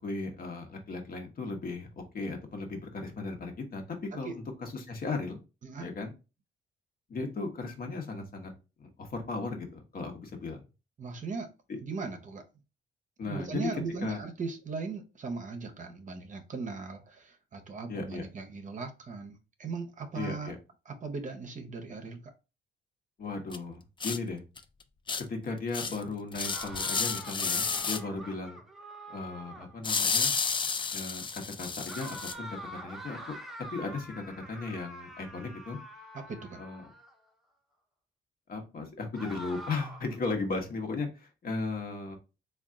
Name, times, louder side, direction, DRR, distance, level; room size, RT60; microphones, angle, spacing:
voice 1, 0.0-5.4 5.8-6.1 7.1-8.5 8.8-10.6 11.7-11.8 13.2-13.7 14.0-14.2 17.9-18.2 20.1-20.6 23.2-24.4 25.2-28.6 29.1-30.3 30.9-33.4 33.7-35.8 36.6-36.8 38.5-42.2, left 3 dB, 50° left, 1.0 m, -36 dB
voice 2, 11.0-11.5 11.8-12.4 13.2-20.5 20.9-22.3 36.1-36.6, right 4 dB, 40° right, 0.7 m, -38 dB
sound 1, 23.5-23.6 24.0-24.2 24.6-24.7 25.1-25.2 25.7-26.0 26.3-28.0 29.8-32.3, left 5 dB, 25° left, 0.4 m, -31 dB
sound 2, 26.4-29.8 31.9-37.1 39.1-40.2, equal, ahead, 0.7 m, -45 dB
3.5 x 2.3 x 3.6 m
cardioid pair, 90°, 20 cm